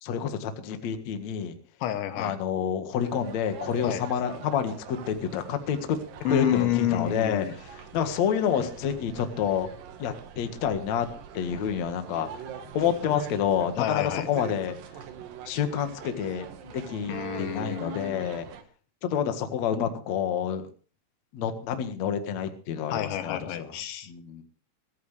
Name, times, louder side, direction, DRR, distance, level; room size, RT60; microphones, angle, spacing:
voice 1, 0.0-1.5 2.2-6.0 6.3-7.4 7.9-9.7 10.0-11.1 11.3-12.3 12.7-14.8 15.5-16.5 16.7-18.5 19.0-20.7 21.3-23.7 24.1-24.4, left 8 dB, 55° left, 7 dB, 2.2 m, -28 dB
voice 2, 1.8-2.4 3.8-4.1 6.3-7.5 13.8-14.3 17.1-18.4 22.9-24.1, left 11 dB, 80° left, 10 dB, 3.6 m, -29 dB
sound 1, 3.0-18.6, right 7 dB, 60° right, 2.7 m, -43 dB
24.0 x 14.0 x 3.4 m, 0.36 s
omnidirectional pair, 5.3 m